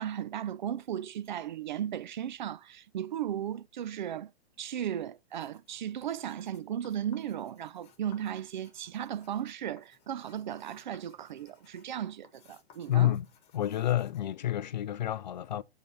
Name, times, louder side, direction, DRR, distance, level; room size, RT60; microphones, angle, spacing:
voice 1, 0.0-4.3 4.6-13.1, right 10 dB, 45° right, 0.5 m, -36 dB
sound 1, 5.3-14.3, left 7 dB, 20° left, 1.4 m, -62 dB
voice 2, 12.9-13.3 13.5-15.6, left 12 dB, 45° left, 0.4 m, -29 dB
8.1 x 5.3 x 4.2 m
figure-of-eight pair, 115°, 32 cm